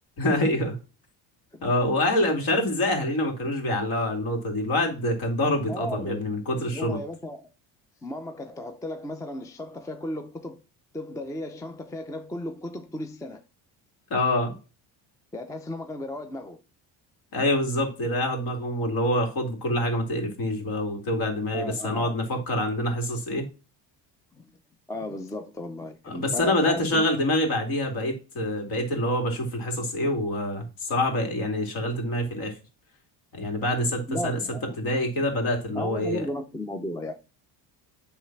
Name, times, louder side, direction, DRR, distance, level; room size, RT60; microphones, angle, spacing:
voice 1, 0.2-0.8 1.6-7.0 14.1-14.5 17.3-23.5 26.1-32.6 33.3-34.4 34.8-36.2, left 1 dB, 50° left, 2.6 m, -26 dB
voice 2, 5.7-6.2 6.7-7.5 8.0-10.6 10.9-13.4 15.3-16.6 21.5-22.1 24.4-24.5 24.9-27.0 33.4-33.5 34.1-34.8 35.7-37.1, left 1 dB, 10° left, 0.5 m, -35 dB
8.2 x 3.3 x 5.9 m
cardioid pair, 115°, 43 cm